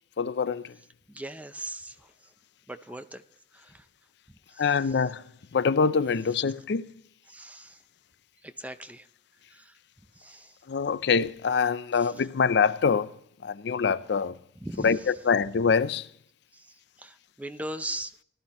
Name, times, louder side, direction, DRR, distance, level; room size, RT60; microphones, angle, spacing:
voice 1, 0.2-0.6 4.6-5.2 5.5-6.8 10.7-13.1 13.4-14.4 14.8-16.1, left 5 dB, 70° left, 0.5 m, -24 dB
voice 2, 1.1-2.3 2.7-3.2 3.5-3.9 4.5-5.0 7.3-7.8 8.4-9.1 9.5-9.8 10.2-10.6 12.0-12.3 14.6-15.1 16.5-18.2, right 1 dB, 10° right, 0.5 m, -40 dB
18.5 x 12.5 x 3.0 m
head